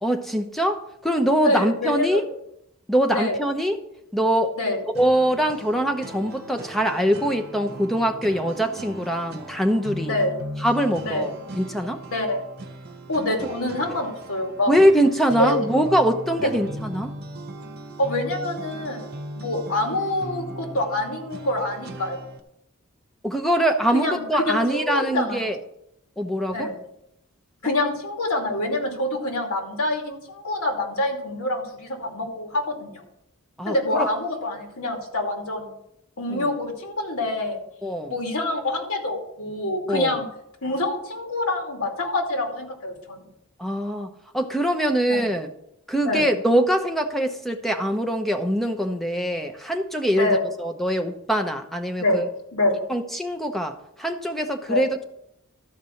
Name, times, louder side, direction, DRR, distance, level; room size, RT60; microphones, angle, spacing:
voice 1, 0.0-2.2 2.9-3.8 4.1-4.5 4.9-10.1 10.6-12.0 14.7-17.1 23.2-25.6 26.2-26.7 33.6-34.1 36.3-36.5 37.8-38.1 39.9-40.2 43.6-45.5 45.9-52.3 52.9-55.0, equal, ahead, 5 dB, 0.8 m, -23 dB
voice 2, 1.4-2.2 3.1-3.4 4.6-4.8 10.1-10.3 11.0-11.2 12.1-12.4 13.1-14.7 15.4-15.6 16.4-16.5 18.0-19.1 19.3-22.3 23.9-25.5 26.5-26.7 27.6-33.0 33.7-35.7 36.2-37.6 38.1-40.3 40.6-43.3 45.1-45.3 46.0-46.3 50.1-50.4 52.0-52.3 52.5-52.7 54.7-54.8, left 1 dB, 85° left, 1 dB, 2.6 m, -26 dB
sound 1, 4.9-22.4, right 1 dB, 45° right, 1.1 m, -38 dB
13.0 x 4.8 x 7.0 m, 0.78 s
head